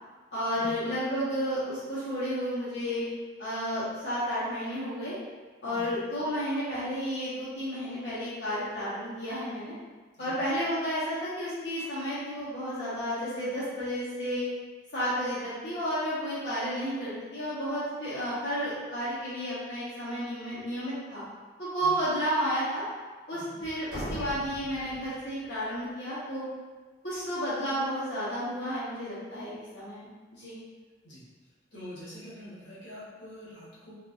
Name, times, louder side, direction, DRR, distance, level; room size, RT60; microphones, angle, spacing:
voice 1, 0.3-3.0 3.4-5.2 5.6-9.7 10.2-14.4 14.9-21.2 21.6-22.8 23.3-26.5 27.0-30.6, equal, 70° left, -12 dB, 1.1 m, -32 dB
sound 1, 23.9-25.8, equal, 25° right, 1.4 m, -40 dB
voice 2, 31.7-33.9, equal, 90° left, -10 dB, 1.3 m, -45 dB
2.7 x 2.6 x 2.4 m, 1.3 s
head